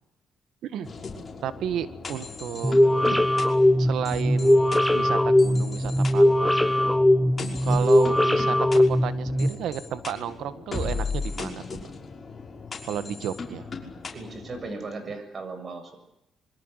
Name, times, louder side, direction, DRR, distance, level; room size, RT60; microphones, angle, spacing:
sound 1, 0.8-14.7, left 4 dB, 35° left, 5.9 m, -37 dB
voice 1, 1.4-2.8 3.1-3.2 3.8-4.6 4.9-6.6 7.4-11.8 12.8-13.7, right 9 dB, 75° right, 13 dB, 1.6 m, -32 dB
sound 2, 2.6-9.5, left 1 dB, 5° left, 1.3 m, -20 dB
voice 2, 14.1-16.0, right 3 dB, 45° right, 9 dB, 7.0 m, -37 dB
26.5 x 23.5 x 8.2 m, 0.87 s
cardioid pair, 90°, 0 cm